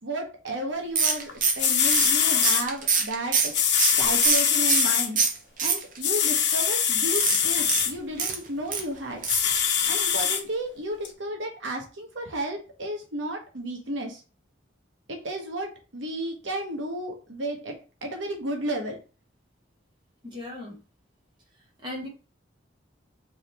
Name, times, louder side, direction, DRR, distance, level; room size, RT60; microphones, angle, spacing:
voice 1, 0.0-3.5 4.0-5.2 5.6-9.2 9.9-14.2 15.1-17.8 18.0-19.0, right 1 dB, 80° right, 2 dB, 1.1 m, -33 dB
sound 1, 1.0-4.9 5.2-6.2 7.1-8.8 9.2-9.5 9.8-9.9 10.2-10.3, right 5 dB, 45° right, 0.6 m, -25 dB
sound 2, 1.3-1.4 1.6-2.6 3.5-5.1 6.0-7.9 9.3-10.4 11.0-11.1, left 8 dB, 65° left, 0.9 m, -23 dB
voice 2, 20.2-20.8 21.8-22.1, left 1 dB, 25° right, -2 dB, 1.5 m, -37 dB
3.6 x 3.2 x 4.1 m, 0.33 s
head